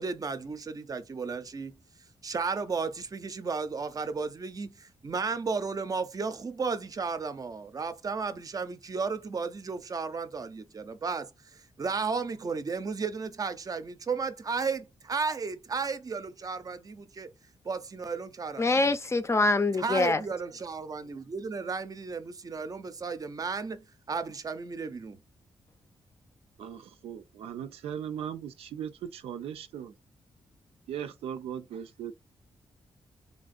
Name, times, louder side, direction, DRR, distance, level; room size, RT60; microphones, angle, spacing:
voice 1, 0.0-1.8 2.2-11.3 11.8-17.3 17.6-18.9 19.8-25.2, right 4 dB, 40° right, 0.5 m, -34 dB
voice 2, 18.6-20.2, left 3 dB, 30° left, 0.5 m, -24 dB
voice 3, 26.6-29.9 30.9-32.1, right 9 dB, 90° right, 0.4 m, -38 dB
3.4 x 2.5 x 2.5 m
cardioid pair, 70°, 10 cm